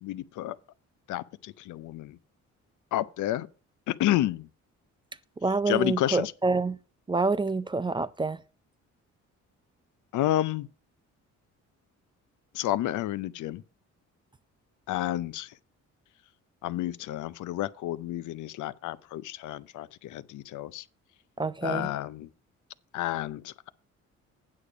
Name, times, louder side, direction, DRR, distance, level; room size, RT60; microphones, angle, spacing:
voice 1, 0.0-0.6 1.1-2.2 2.9-3.5 3.9-4.5 5.7-6.3 10.1-10.7 12.5-13.6 14.9-15.6 16.6-20.9 21.6-22.3 22.9-23.7, left 14 dB, 80° left, 0.6 m, -30 dB
voice 2, 5.4-6.8 7.1-8.4 21.4-21.9, right 3 dB, 15° right, 0.4 m, -27 dB
8.6 x 6.7 x 5.0 m
cardioid pair, 90°, 30 cm